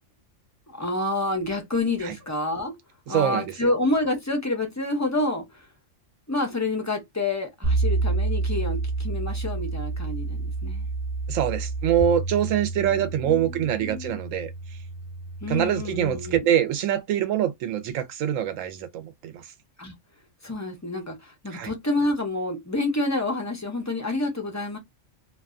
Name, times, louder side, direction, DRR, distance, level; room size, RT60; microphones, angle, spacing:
voice 1, 0.7-2.8 3.1-5.7 6.3-10.9 12.8-14.2 15.4-16.5 19.8-19.9 20.4-24.8, left 2 dB, 25° left, 0.4 m, -28 dB
voice 2, 3.1-3.7 11.3-14.5 15.5-19.5 21.5-21.7, right 10 dB, 85° right, 1.0 m, -25 dB
sound 1, 7.6-16.4, right 3 dB, 35° right, 0.6 m, -29 dB
2.6 x 2.3 x 2.4 m
omnidirectional pair, 1.3 m